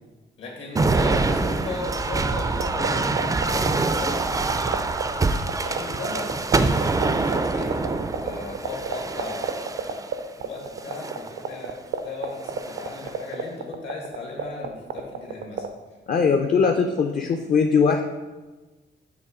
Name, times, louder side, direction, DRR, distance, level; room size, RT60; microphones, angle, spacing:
voice 1, 0.4-4.6 5.6-15.6, left 3 dB, 75° left, -1 dB, 1.8 m, -36 dB
sound 1, 0.8-10.1 10.8-11.3 12.4-13.1, right 3 dB, 20° right, 0.3 m, -25 dB
sound 2, 2.3-15.7, right 10 dB, 80° right, 0.5 m, -27 dB
voice 2, 16.1-18.0, left 5 dB, 45° left, 4 dB, 0.5 m, -20 dB
7.1 x 2.9 x 4.9 m, 1.2 s
cardioid pair, 105°, 19 cm